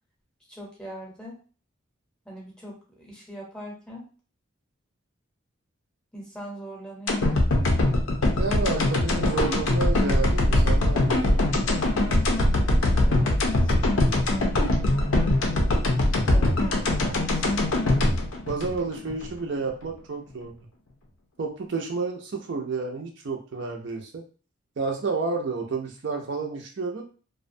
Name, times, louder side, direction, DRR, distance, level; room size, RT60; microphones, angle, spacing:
voice 1, 0.5-1.4 2.2-4.1 6.1-7.4 13.0-13.8 16.0-16.7 17.0-17.7, equal, 5° left, -3 dB, 0.7 m, -41 dB
sound 1, 7.1-19.3 19.7-19.8, left 1 dB, 80° left, 0.5 m, -22 dB
voice 2, 8.4-11.4 18.5-20.6 21.4-24.2 24.8-27.0, right 4 dB, 60° right, 2 dB, 0.4 m, -30 dB
2.4 x 2.1 x 2.5 m, 0.37 s
head